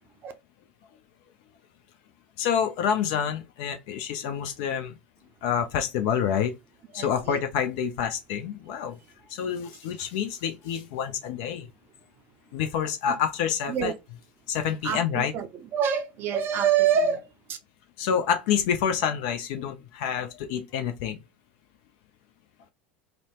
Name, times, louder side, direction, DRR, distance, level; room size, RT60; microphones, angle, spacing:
voice 1, 2.4-5.0 5.4-6.5 6.9-9.0 9.3-11.7 12.5-13.9 14.5-15.3 18.0-21.2, left 8 dB, 55° left, 0.4 m, -27 dB
voice 2, 6.9-7.4 13.7-13.9 14.8-15.5 15.7-17.6, right 8 dB, 40° right, 0.5 m, -26 dB
2.6 x 2.0 x 3.0 m
figure-of-eight pair, 75°, 6 cm